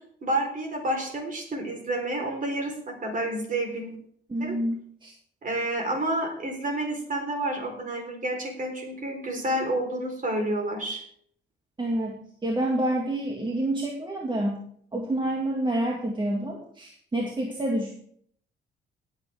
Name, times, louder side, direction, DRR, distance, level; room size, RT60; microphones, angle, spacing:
voice 1, 0.2-3.9 4.4-4.6 5.4-11.0, right 1 dB, 40° right, 3 dB, 4.0 m, -29 dB
voice 2, 4.3-5.1 11.8-14.6 14.9-18.0, right 1 dB, 25° right, 0 dB, 2.0 m, -28 dB
18.5 x 8.1 x 3.6 m, 0.62 s
cardioid pair, 90°, 20 cm